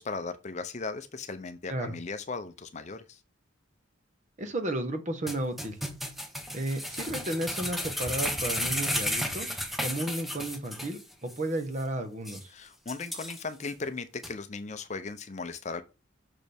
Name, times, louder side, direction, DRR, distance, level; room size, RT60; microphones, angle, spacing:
voice 1, 0.0-3.2 12.5-15.8, left 4 dB, 35° left, 0.6 m, -37 dB
voice 2, 4.4-5.8 6.5-12.5, right 1 dB, 35° right, 1.2 m, -33 dB
sound 1, 5.3-11.0 11.3-11.4 11.8-11.9 12.3-12.4 12.9-13.7 14.2-14.3, equal, ahead, 1.0 m, -33 dB
6.6 x 6.2 x 3.5 m
head